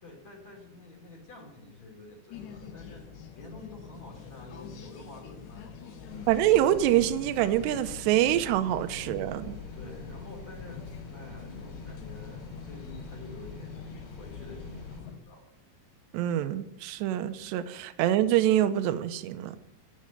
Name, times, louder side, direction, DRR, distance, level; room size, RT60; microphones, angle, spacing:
voice 1, 0.0-3.0 3.4-6.3 9.7-15.4, left 2 dB, 40° left, -1 dB, 3.6 m, -49 dB
sound 1, 2.3-15.2, left 7 dB, 70° left, 3.4 m, -45 dB
sound 2, 6.1-15.0, left 3 dB, 25° left, 4.4 m, -45 dB
voice 2, 6.3-9.6 16.1-19.6, right 12 dB, 80° right, 11 dB, 2.7 m, -25 dB
14.0 x 7.4 x 9.2 m, 0.83 s
omnidirectional pair, 5.5 m